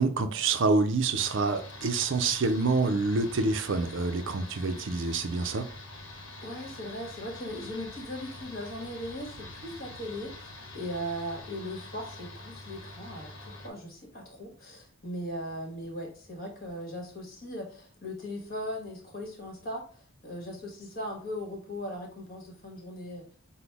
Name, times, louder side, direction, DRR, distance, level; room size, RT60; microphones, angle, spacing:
voice 1, 0.0-5.7, right 3 dB, 60° right, 0.5 m, -27 dB
sound 1, 1.2-13.7, left 2 dB, 70° left, 1.0 m, -45 dB
voice 2, 6.4-10.5 10.7-23.2, equal, 45° left, 1.4 m, -38 dB
5.9 x 2.1 x 3.4 m
head